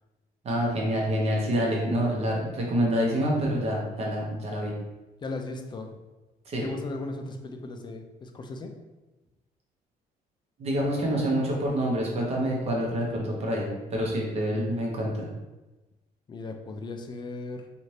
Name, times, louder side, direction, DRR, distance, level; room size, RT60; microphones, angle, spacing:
voice 1, 0.4-4.7 6.5-6.6 10.6-15.3, equal, 40° right, -2 dB, 0.8 m, -27 dB
voice 2, 5.2-6.0 6.6-8.8 16.3-17.7, left 2 dB, 30° left, 5 dB, 0.4 m, -37 dB
2.7 x 2.5 x 3.2 m, 1.1 s
cardioid pair, 115°, 16 cm